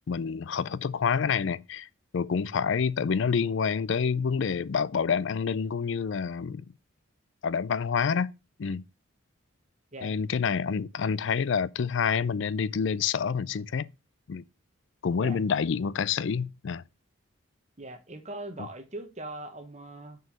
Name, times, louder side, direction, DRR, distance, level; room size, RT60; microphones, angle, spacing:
voice 1, 0.1-1.9 2.1-6.6 7.4-8.3 8.6-8.8 10.0-13.9 14.3-14.4 15.0-16.8 18.6-18.7, left 6 dB, 60° left, 0.4 m, -28 dB
voice 2, 17.8-20.2, right 2 dB, 35° right, 1.2 m, -40 dB
6.2 x 4.7 x 5.9 m
head